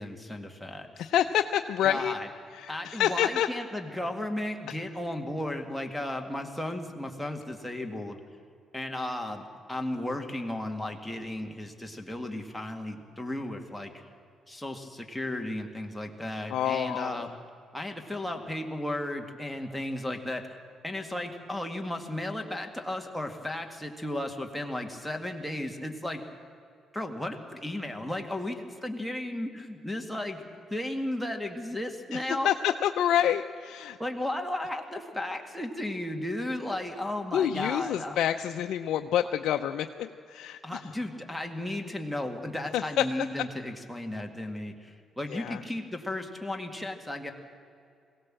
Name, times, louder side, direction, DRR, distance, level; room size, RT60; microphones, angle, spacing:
voice 1, 0.0-1.0 1.8-2.3 2.7-8.2 8.7-13.9 14.5-17.3 17.7-20.4 20.8-26.2 26.9-32.7 34.0-38.2 40.6-47.3, left 1 dB, 5° left, 2 dB, 2.1 m, -34 dB
voice 2, 1.0-2.1 2.5-3.5 4.7-4.8 16.5-17.3 32.1-34.0 37.3-40.8 42.7-43.1 45.3-45.6, left 10 dB, 80° left, 5 dB, 0.5 m, -28 dB
21.5 x 17.0 x 7.6 m, 2.4 s
cardioid pair, 90°, 0 cm